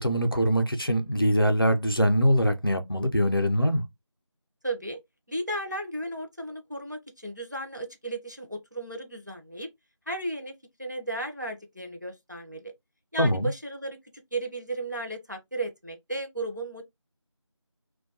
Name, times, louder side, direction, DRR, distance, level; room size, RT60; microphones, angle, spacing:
voice 1, 0.0-3.8 13.2-13.5, equal, 50° left, 0.4 m, -23 dB
voice 2, 4.6-5.0 5.3-9.7 10.1-10.5 10.8-12.7 13.1-14.0 14.3-16.8, right 2 dB, 35° right, 0.5 m, -34 dB
2.5 x 2.2 x 2.7 m
figure-of-eight pair, 180°, 16 cm